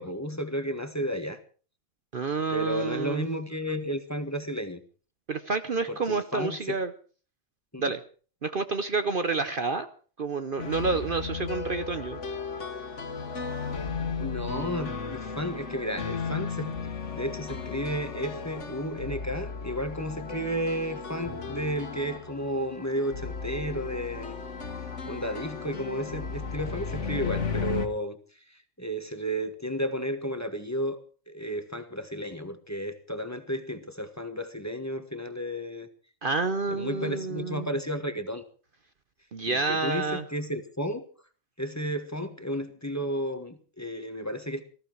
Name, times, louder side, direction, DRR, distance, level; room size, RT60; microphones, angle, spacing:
voice 1, 0.0-1.4 2.5-4.8 5.9-6.8 7.7-7.9 14.2-24.3 25.1-28.2 28.8-31.0 31.3-35.9 36.7-38.4 39.5-41.0 41.6-44.6, equal, 15° left, 8 dB, 1.4 m, -32 dB
voice 2, 2.1-3.2 5.3-6.9 7.8-8.0 8.4-9.9 10.2-12.2 36.2-37.7 39.3-40.2, right 4 dB, 45° right, 10 dB, 1.0 m, -29 dB
sound 1, 10.6-27.9, left 5 dB, 65° left, 1.9 m, -35 dB
19.5 x 15.0 x 4.6 m, 0.40 s
omnidirectional pair, 1.3 m